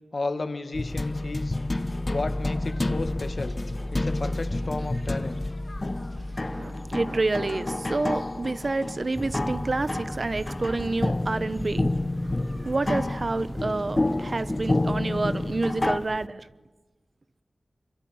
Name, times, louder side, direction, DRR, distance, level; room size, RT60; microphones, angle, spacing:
voice 1, 0.1-1.6 2.1-3.6 3.9-5.4, left 3 dB, 50° left, 2.1 m, -33 dB
sound 1, 0.7-16.0, left 2 dB, 30° left, 1.1 m, -29 dB
voice 2, 6.5-11.9 12.6-16.5, right 3 dB, 45° right, 1.0 m, -28 dB
sound 2, 9.1-16.3, right 1 dB, 15° right, 0.9 m, -39 dB
25.5 x 23.0 x 9.5 m
wide cardioid pair, 85°, 0 cm